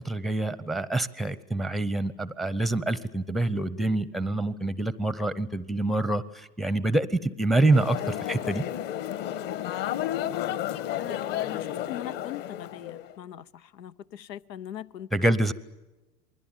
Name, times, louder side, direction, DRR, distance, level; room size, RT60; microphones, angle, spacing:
voice 1, 0.0-8.6 15.1-15.5, right 2 dB, ahead, 17 dB, 0.7 m, -26 dB
sound 1, 7.7-13.1, left 12 dB, 40° left, 1.8 m, -32 dB
voice 2, 11.0-15.1, left 11 dB, 80° left, 16 dB, 0.9 m, -40 dB
28.0 x 21.0 x 7.3 m, 1.1 s
hypercardioid pair, 110°, 49 cm